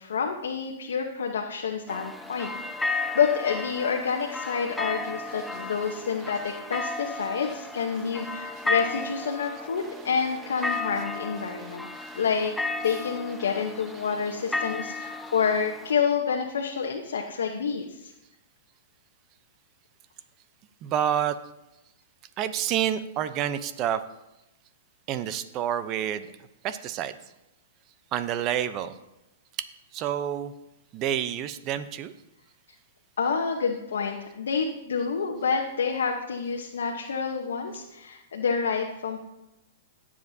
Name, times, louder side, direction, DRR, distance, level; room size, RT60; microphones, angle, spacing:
voice 1, 0.0-11.9 12.1-12.5 12.8-18.1 33.2-39.2, left 6 dB, 85° left, 2 dB, 1.0 m, -28 dB
sound 1, 1.9-15.9, left 3 dB, 5° left, 0.5 m, -34 dB
voice 2, 5.4-6.0 6.3-6.4 6.9-7.5 7.9-8.0 8.6-9.5 9.9-10.4 10.7-10.8 11.4-11.5 11.9-12.5 12.9-13.2 14.1-14.3 20.8-21.4 22.4-24.0 25.1-26.3 26.6-27.1 28.1-28.9 29.9-30.5 30.9-32.1, right 10 dB, 35° right, 12 dB, 0.7 m, -30 dB
18.0 x 7.5 x 2.8 m, 0.92 s
hypercardioid pair, 135°, 0 cm